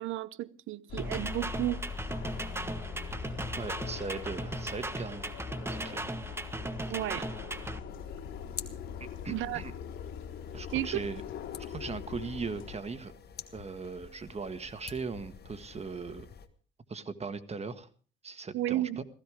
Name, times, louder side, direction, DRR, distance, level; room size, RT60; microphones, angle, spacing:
voice 1, 0.0-1.8 6.9-7.3 9.3-9.6 10.7-11.0 18.5-19.0, right 15 dB, 85° right, 0.8 m, -32 dB
sound 1, 0.9-12.8, left 7 dB, 75° left, 2.5 m, -42 dB
sound 2, 1.0-7.8, right 1 dB, 10° right, 1.3 m, -37 dB
voice 2, 3.6-5.3 5.7-6.1 6.8-6.9 9.2-9.7 10.5-11.2 11.7-13.1 13.5-16.3 16.9-17.9 18.2-19.0, right 4 dB, 30° right, 1.7 m, -39 dB
sound 3, 7.9-16.5, left 7 dB, 55° left, 1.6 m, -49 dB
16.0 x 15.0 x 5.0 m
cardioid pair, 90°, 20 cm